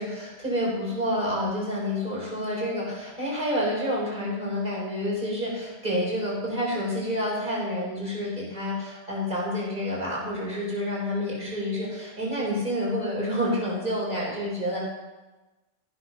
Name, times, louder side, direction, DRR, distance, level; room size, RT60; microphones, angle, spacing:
voice 1, 0.0-14.8, equal, 40° right, -6 dB, 4.3 m, -28 dB
15.0 x 5.7 x 5.6 m, 1.1 s
omnidirectional pair, 1.2 m